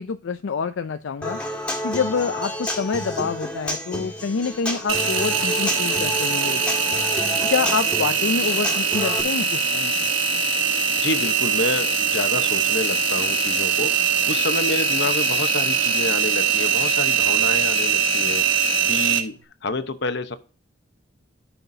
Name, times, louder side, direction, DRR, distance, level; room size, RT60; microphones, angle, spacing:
voice 1, 0.0-1.4 1.8-7.0 7.5-10.1, left 5 dB, 80° left, 9 dB, 0.4 m, -27 dB
Human voice / Acoustic guitar, 1.2-9.2, left 1 dB, 5° left, 1.9 m, -30 dB
Engine, 4.9-19.2, right 5 dB, 85° right, 1.2 m, -22 dB
voice 2, 11.0-19.3 19.6-20.4, left 2 dB, 60° left, 10 dB, 0.9 m, -28 dB
13.5 x 5.8 x 2.7 m, 0.35 s
head